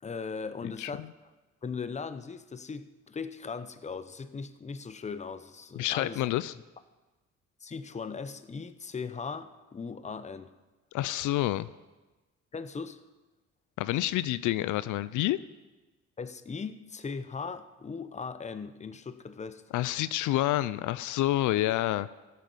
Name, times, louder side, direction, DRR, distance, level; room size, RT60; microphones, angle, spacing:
voice 1, 0.0-1.1 1.6-6.3 7.6-10.5 12.5-13.0 16.2-19.6, left 5 dB, 25° left, 11 dB, 0.7 m, -38 dB
voice 2, 5.8-6.5 10.9-11.7 13.8-15.4 19.7-22.1, left 15 dB, 80° left, 16 dB, 0.5 m, -28 dB
14.5 x 7.7 x 5.4 m, 1.2 s
cardioid pair, 90°, 30 cm